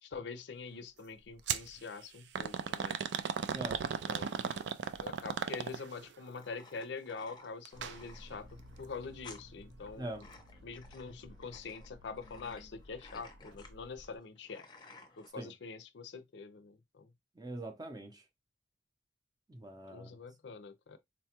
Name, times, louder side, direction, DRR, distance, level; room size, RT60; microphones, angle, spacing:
voice 1, 0.0-3.0 3.8-10.3 10.6-14.7 15.2-17.1 19.9-21.0, left 4 dB, 65° left, 0.5 m, -45 dB
sound 1, 1.5-1.7 2.3-6.0 7.6-8.0 8.3-8.4 9.3-9.4, right 7 dB, 65° right, 0.4 m, -35 dB
sound 2, 4.0-15.3, left 3 dB, 25° left, 0.6 m, -57 dB
sound 3, 7.7-14.2, left 1 dB, 85° right, 0.7 m, -55 dB
voice 2, 17.4-18.2 19.5-20.1, right 1 dB, 20° right, 0.6 m, -42 dB
4.0 x 2.2 x 2.8 m
head